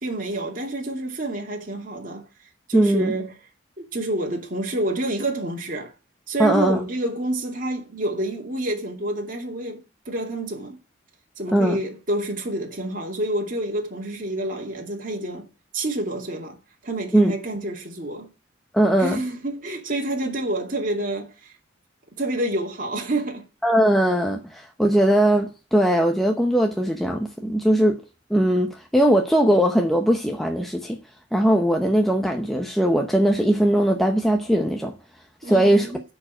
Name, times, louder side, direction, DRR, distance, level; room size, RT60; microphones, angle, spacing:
voice 1, 0.0-2.2 2.7-3.3 3.8-5.9 6.3-10.8 11.4-15.5 15.7-16.6 16.8-18.3 19.0-21.5 22.2-23.4 35.4-36.0, right 1 dB, 45° right, 2.5 m, -28 dB
voice 2, 2.7-3.1 6.4-6.8 11.5-11.8 17.1-17.3 18.7-19.2 23.6-28.0 28.3-31.0 31.3-34.9 35.4-35.9, right 1 dB, ahead, 0.8 m, -20 dB
10.5 x 4.7 x 7.5 m
head